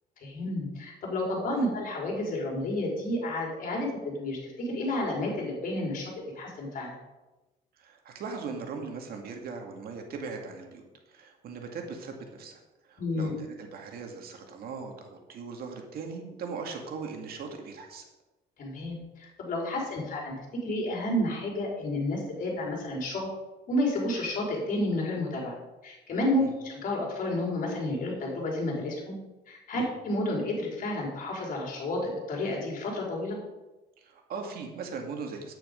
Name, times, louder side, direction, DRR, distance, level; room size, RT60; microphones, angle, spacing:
voice 1, 0.2-7.0 13.0-13.3 18.6-20.3 20.6-23.3 23.7-25.5 25.8-29.2 29.5-33.4, left 1 dB, 50° left, -1 dB, 4.3 m, -31 dB
voice 2, 7.8-18.1 26.4-26.5 29.7-29.9 34.0-35.6, right 5 dB, 65° right, 3 dB, 2.1 m, -39 dB
9.8 x 9.1 x 5.2 m, 1.1 s
cardioid pair, 110°, 17 cm